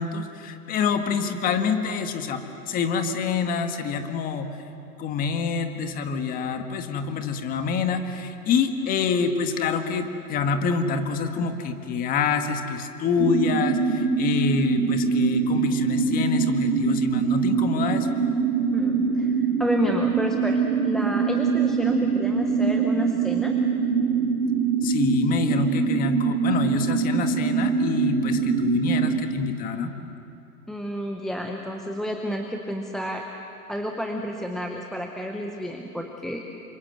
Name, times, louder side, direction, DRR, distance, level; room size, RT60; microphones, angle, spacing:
voice 1, 0.0-4.5 5.0-18.1 24.8-29.9, left 5 dB, 20° left, 6 dB, 1.7 m, -26 dB
sound 1, 13.2-29.2, right 6 dB, 75° right, 2.9 m, -23 dB
voice 2, 18.7-23.5 30.7-33.2 33.7-36.5, equal, ahead, 2 dB, 0.7 m, -30 dB
29.0 x 26.0 x 7.8 m, 2.8 s
hypercardioid pair, 135°, 46 cm